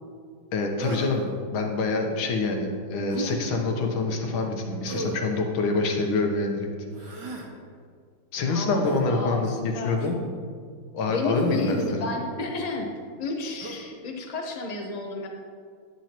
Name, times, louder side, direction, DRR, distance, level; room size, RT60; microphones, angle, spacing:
voice 1, 0.5-6.7 7.0-7.4 8.3-10.2 10.9-12.0, left 3 dB, 80° left, 2 dB, 1.8 m, -26 dB
Human voice, 0.8-1.3 3.1-3.4 4.9-5.3 6.9-7.5 8.8-9.1 10.0-10.3 11.3-12.0 13.6-13.8, right 3 dB, 65° right, 1.4 m, -35 dB
voice 2, 8.5-10.0 11.1-12.9 13.2-15.3, left 2 dB, 45° left, 1 dB, 0.5 m, -31 dB
10.0 x 9.2 x 2.9 m, 2.1 s
omnidirectional pair, 2.2 m